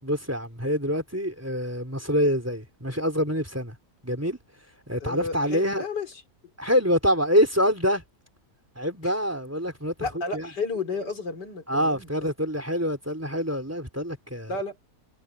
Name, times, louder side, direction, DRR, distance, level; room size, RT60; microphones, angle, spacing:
voice 1, 0.0-3.8 4.0-4.4 4.9-5.9 6.6-8.0 8.8-10.1 10.3-10.5 11.7-14.5, equal, 10° right, 3.6 m, -25 dB
voice 2, 5.0-6.2 9.0-9.1 10.0-12.3 14.5-14.8, left 4 dB, 90° left, 4.2 m, -32 dB
omnidirectional pair, 1.8 m